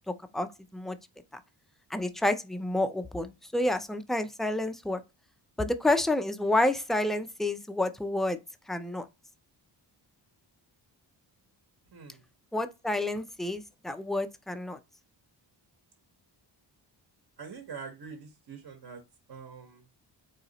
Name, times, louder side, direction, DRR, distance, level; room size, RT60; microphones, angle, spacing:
voice 1, 0.3-1.0 1.9-5.0 5.6-8.4 8.7-9.0 12.5-14.8, left 1 dB, ahead, 0.3 m, -29 dB
voice 2, 11.9-12.2 17.4-19.0 19.3-19.8, right 5 dB, 55° right, 1.1 m, -44 dB
4.1 x 2.8 x 4.0 m
wide cardioid pair, 115°, 44 cm